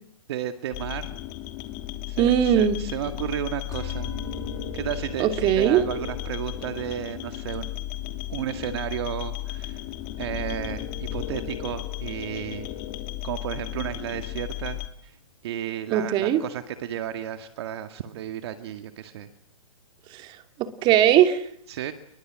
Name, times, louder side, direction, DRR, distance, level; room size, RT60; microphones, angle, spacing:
voice 1, 0.3-1.2 2.1-4.1 4.7-7.8 8.3-9.8 10.2-12.7 13.2-15.2 15.4-19.3 21.7-21.9, right 10 dB, 50° right, 8 dB, 2.2 m, -33 dB
sound 1, 0.7-14.9, left 13 dB, 35° left, 2.9 m, -34 dB
voice 2, 2.2-2.8 5.2-5.8 15.9-16.4 20.1-21.4, right 10 dB, 25° right, 8 dB, 3.0 m, -20 dB
sound 2, 3.7-14.2, left 1 dB, 20° left, 4.6 m, -45 dB
29.5 x 23.5 x 7.7 m, 0.69 s
hypercardioid pair, 140°, 18 cm